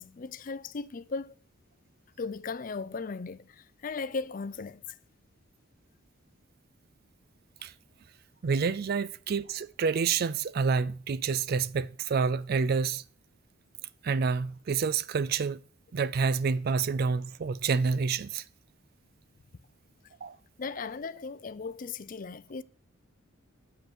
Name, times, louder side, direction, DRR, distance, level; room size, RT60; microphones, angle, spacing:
voice 1, 0.0-1.4 2.2-4.8 20.6-22.6, left 4 dB, 40° left, 0.4 m, -37 dB
voice 2, 8.4-13.0 14.0-15.6 15.9-18.4 20.2-20.4, right 5 dB, 50° right, 0.4 m, -28 dB
7.9 x 7.7 x 6.1 m
head